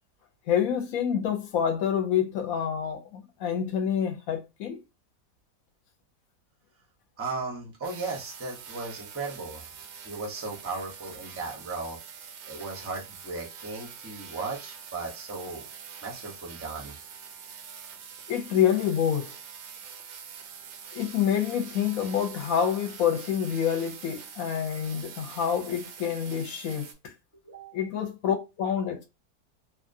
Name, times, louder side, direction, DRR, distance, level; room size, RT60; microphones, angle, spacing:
voice 1, 0.5-4.8 18.3-19.3 20.9-27.1 27.7-29.0, left 8 dB, 65° left, 1.0 m, -27 dB
voice 2, 7.2-9.7 10.0-12.0 12.2-15.6 16.0-16.9 27.4-27.8, right 3 dB, 15° right, 0.4 m, -36 dB
sound 1, 7.8-26.9, right 7 dB, 90° right, 1.2 m, -45 dB
2.8 x 2.4 x 2.5 m
omnidirectional pair, 1.8 m